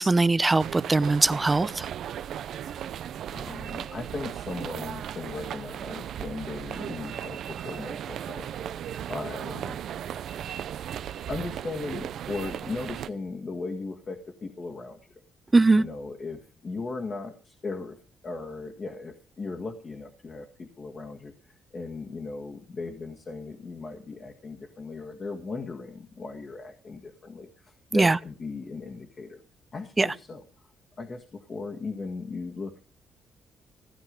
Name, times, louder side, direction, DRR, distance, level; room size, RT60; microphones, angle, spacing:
voice 1, 0.0-1.9 15.5-15.8 27.9-28.2 30.0-30.1, right 3 dB, 20° right, 17 dB, 0.6 m, -21 dB
sound 1, 0.6-13.1, right 10 dB, 70° right, 0.6 m, -36 dB
voice 2, 3.3-8.5 9.1-9.8 11.3-15.0 15.7-18.0 18.2-29.4 29.7-30.5 31.0-32.8, left 3 dB, 40° left, 2 dB, 1.8 m, -37 dB
16.5 x 9.6 x 5.3 m, 0.37 s
cardioid pair, 90°, 0 cm